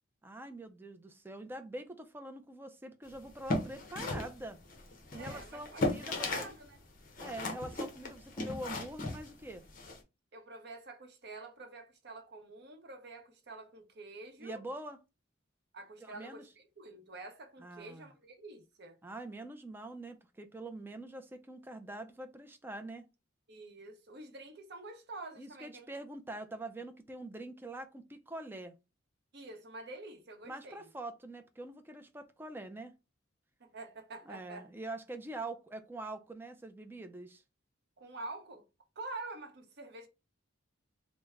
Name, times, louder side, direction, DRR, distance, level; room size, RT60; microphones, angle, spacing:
voice 1, 0.2-4.6 5.1-6.3 7.2-9.6 14.4-15.0 16.0-16.5 17.6-18.1 19.0-23.1 25.4-28.7 30.4-32.9 34.3-37.4, right 1 dB, 10° right, 0.3 m, -44 dB
sound 1, 3.2-6.6 6.8-10.0, left 2 dB, 45° left, 0.8 m, -36 dB
voice 2, 5.2-6.8 10.3-14.6 15.7-19.0 23.5-25.9 29.3-30.9 33.6-34.7 38.0-38.6 39.0-40.1, right 2 dB, 55° right, 0.7 m, -47 dB
3.2 x 2.0 x 3.4 m
head